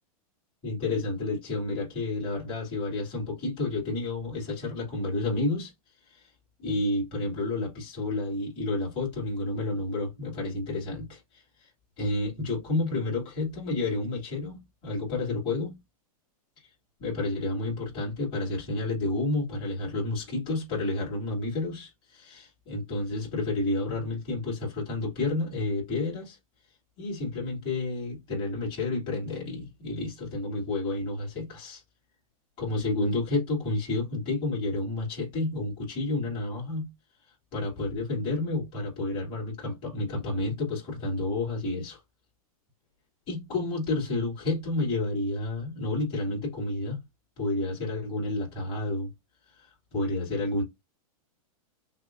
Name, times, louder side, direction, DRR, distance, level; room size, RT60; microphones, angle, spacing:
voice 1, 0.6-5.7 6.1-6.2 6.6-11.2 11.6-11.7 12.0-15.8 17.0-26.4 27.0-31.8 32.6-36.9 37.5-42.0 43.3-47.0 47.4-49.1 49.5-50.6, left 2 dB, 30° left, 2.9 m, -30 dB
6.4 x 2.3 x 2.4 m
supercardioid pair, 145°, 19 cm